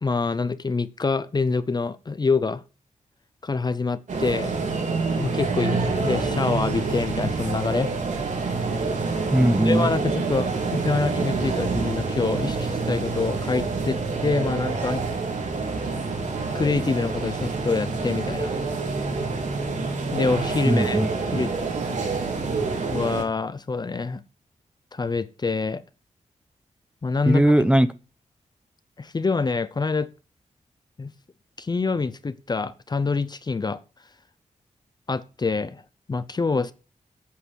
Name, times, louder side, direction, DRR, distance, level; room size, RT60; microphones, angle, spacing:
voice 1, 0.0-2.6 3.4-4.5 5.2-7.9 9.6-15.0 16.5-18.5 20.1-21.0 21.3-21.5 22.9-24.2 24.9-25.8 27.0-27.6 29.0-30.1 31.0-31.1 31.6-33.8 35.1-35.8 36.1-36.7, left 4 dB, 35° left, 0.8 m, -26 dB
sound 1, 4.1-23.2, right 4 dB, 75° right, 3.7 m, -27 dB
voice 2, 9.3-9.9 20.6-21.1 27.3-27.9, right 1 dB, 10° right, 0.9 m, -19 dB
8.6 x 8.5 x 7.4 m
wide cardioid pair, 95°, 13 cm